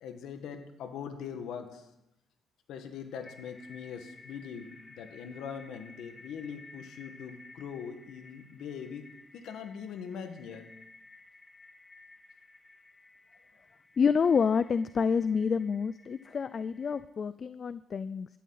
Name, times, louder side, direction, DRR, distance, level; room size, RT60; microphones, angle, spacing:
voice 1, 0.0-1.8 2.7-9.0 9.3-10.7, left 7 dB, 80° left, 7 dB, 1.7 m, -42 dB
sound 1, 2.7-17.0, left 2 dB, 25° left, 2.0 m, -55 dB
voice 2, 14.0-18.3, left 6 dB, 45° left, 15 dB, 0.4 m, -28 dB
17.5 x 12.5 x 4.1 m, 0.86 s
cardioid pair, 90°, 0 cm